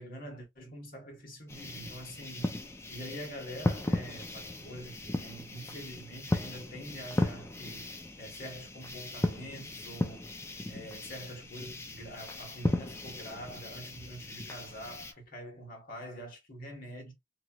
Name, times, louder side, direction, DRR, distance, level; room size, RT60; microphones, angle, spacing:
voice 1, 0.0-10.2 10.7-17.1, equal, 45° left, 1.4 m, -45 dB
sound 1, 1.5-15.1, left 1 dB, 15° left, 0.4 m, -36 dB
3.1 x 2.8 x 2.3 m
head